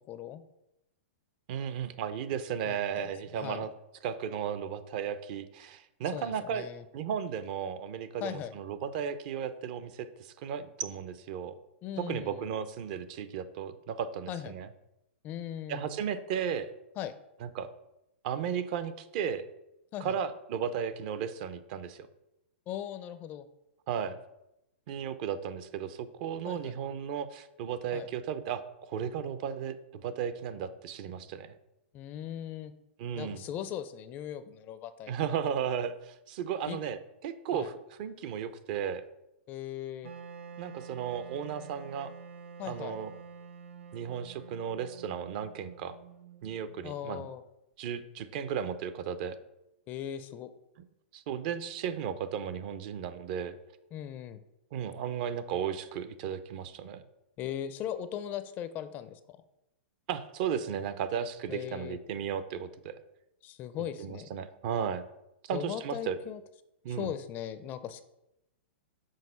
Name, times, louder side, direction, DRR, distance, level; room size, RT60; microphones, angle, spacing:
voice 1, 0.1-0.4 2.7-3.7 6.1-6.8 8.2-8.5 11.8-12.5 14.3-14.6 15.2-15.9 17.0-17.1 19.9-20.2 22.7-23.5 26.5-26.7 27.9-28.1 31.9-32.7 33.1-35.1 36.7-36.8 37.5-37.7 39.5-40.1 42.6-43.0 46.8-47.4 49.9-50.5 53.9-54.4 57.4-59.4 61.5-62.0 63.4-64.3 65.5-66.4 66.9-68.0, left 10 dB, 25° left, 12 dB, 0.4 m, -39 dB
voice 2, 1.5-3.7 4.0-6.7 6.9-11.5 12.0-14.7 15.7-16.7 17.4-17.7 18.2-19.4 20.0-22.1 23.9-24.2 24.9-31.5 33.0-33.4 35.1-37.7 38.0-39.0 40.6-42.1 42.6-43.1 43.9-46.0 46.4-47.3 47.8-49.4 51.1-53.6 54.7-57.0 60.1-62.9 64.0-65.0 65.4-66.2 66.8-67.1, right 8 dB, 45° right, 12 dB, 0.6 m, -35 dB
Wind instrument woodwind instrument, 40.0-47.0, right 6 dB, 85° right, 0.6 m, -48 dB
6.4 x 4.4 x 5.5 m, 0.88 s
hypercardioid pair, 145°, 7 cm